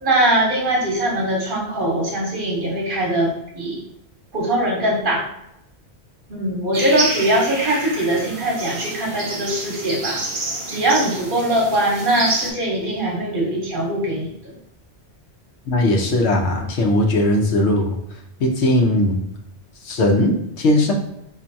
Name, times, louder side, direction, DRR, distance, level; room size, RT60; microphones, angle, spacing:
voice 1, 0.0-3.8 4.3-5.2 6.3-10.2 10.7-14.6, right 1 dB, 55° right, -2 dB, 1.0 m, -21 dB
sound 1, 6.7-12.5, right 2 dB, 35° right, 0.5 m, -28 dB
voice 2, 15.7-18.0 18.4-19.2 19.8-20.9, left 1 dB, 85° left, 2 dB, 1.0 m, -18 dB
4.4 x 2.6 x 2.6 m, 0.83 s
omnidirectional pair, 1.1 m